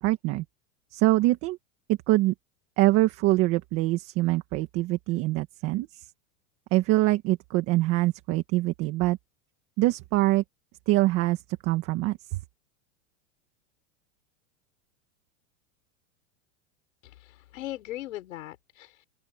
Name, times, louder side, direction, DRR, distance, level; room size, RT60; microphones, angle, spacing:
voice 1, 0.0-0.4 0.9-1.6 1.9-2.3 2.8-6.1 6.7-9.2 9.8-10.4 10.9-12.4, right 18 dB, 35° right, 1.7 m, -24 dB
voice 2, 17.0-19.0, left 15 dB, 90° left, 5.6 m, -39 dB
open air
supercardioid pair, 165°, 38 cm